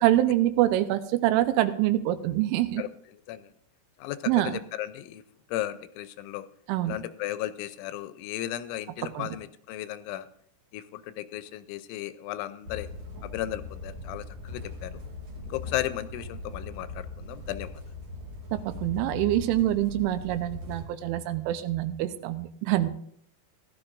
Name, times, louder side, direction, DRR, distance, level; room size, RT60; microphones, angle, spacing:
voice 1, 0.0-2.8 4.3-4.6 6.7-6.9 9.2-9.3 18.5-22.9, right 14 dB, 85° right, 11 dB, 3.1 m, -25 dB
voice 2, 4.0-5.2 5.5-6.5 6.9-10.3 10.7-12.9 13.2-14.9 15.4-17.7, left 13 dB, 85° left, 12 dB, 2.9 m, -35 dB
sound 1, 12.6-20.8, left 3 dB, 70° right, 1.3 m, -40 dB
16.5 x 12.0 x 2.5 m, 0.65 s
omnidirectional pair, 5.6 m